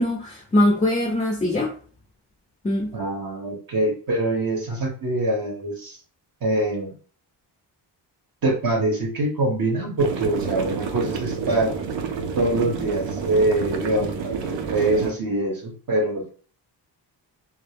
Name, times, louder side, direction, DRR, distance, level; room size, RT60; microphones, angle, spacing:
voice 1, 0.0-1.7 2.6-2.9, left 1 dB, 15° left, 0.4 m, -22 dB
voice 2, 2.9-6.0 6.4-6.9 8.4-11.7 12.4-16.3, right 2 dB, 50° right, 0.8 m, -24 dB
sound 1, 10.0-15.1, right 6 dB, 80° right, 0.6 m, -29 dB
2.2 x 2.0 x 3.3 m
cardioid pair, 110°, 44 cm